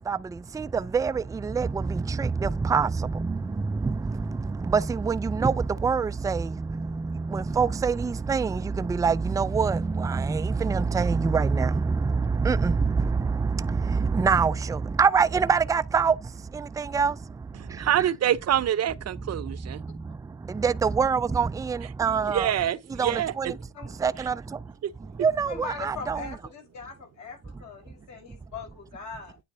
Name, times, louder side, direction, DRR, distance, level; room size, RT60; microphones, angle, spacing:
voice 1, 4.7-5.5 5.8-6.4 7.3-8.5 9.0-9.8 10.1-11.7 12.5-12.7 14.2-14.5 15.0-16.1 16.9-17.1 20.6-22.5 23.0-23.1 23.4-23.5 24.0-24.3 25.2-25.5 25.8-26.2, right 5 dB, 10° right, 0.3 m, -23 dB
voice 2, 17.5-19.8 22.1-23.5 24.2-24.3 24.8-24.9, right 10 dB, 55° right, 0.8 m, -26 dB
voice 3, 25.5-29.4, left 5 dB, 70° left, 5.2 m, -40 dB
9.3 x 3.2 x 4.1 m
cardioid pair, 90°, 30 cm